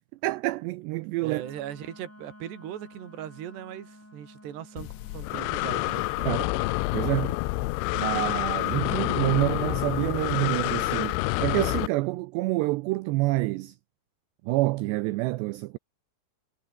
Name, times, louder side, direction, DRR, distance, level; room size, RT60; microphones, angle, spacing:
voice 1, 0.2-1.4 6.3-6.5 6.9-7.4 7.9-13.8 14.4-15.8, right 20 dB, 85° right, 2.4 m, -27 dB
Wind instrument woodwind instrument, 1.2-6.0, left 1 dB, 5° left, 2.8 m, -51 dB
voice 2, 1.2-4.9 5.1-6.4, right 11 dB, 60° right, 4.5 m, -39 dB
Breathing, 4.8-11.9, left 21 dB, 80° left, 3.0 m, -28 dB
omnidirectional pair, 5.6 m